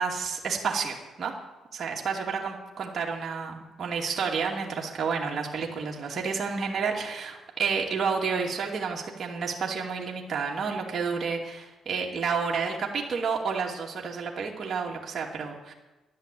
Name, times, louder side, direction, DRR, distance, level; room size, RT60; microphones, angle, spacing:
voice 1, 0.0-1.3 1.7-15.7, right 5 dB, 50° right, -1 dB, 2.6 m, -30 dB
12.5 x 11.5 x 8.6 m, 1.1 s
cardioid pair, 90°, 0 cm